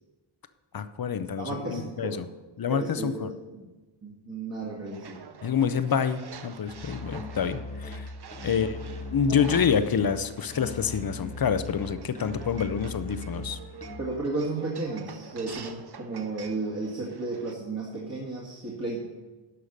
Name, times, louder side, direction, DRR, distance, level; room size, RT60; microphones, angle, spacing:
voice 1, 0.7-2.3 2.6-3.3 5.4-8.1 8.4-8.8 9.1-13.6, left 7 dB, 45° left, 12 dB, 0.7 m, -27 dB
voice 2, 1.3-2.2 2.7-3.7 4.0-5.2 8.4-8.7 14.0-19.0, right 3 dB, 30° right, -5 dB, 2.0 m, -33 dB
sound 1, 4.9-17.5, right 6 dB, 55° right, 0.8 m, -46 dB
Musical instrument, 6.7-14.3, left 3 dB, 15° left, 0.8 m, -39 dB
11.5 x 5.6 x 6.6 m, 1.2 s
wide cardioid pair, 85°, 49 cm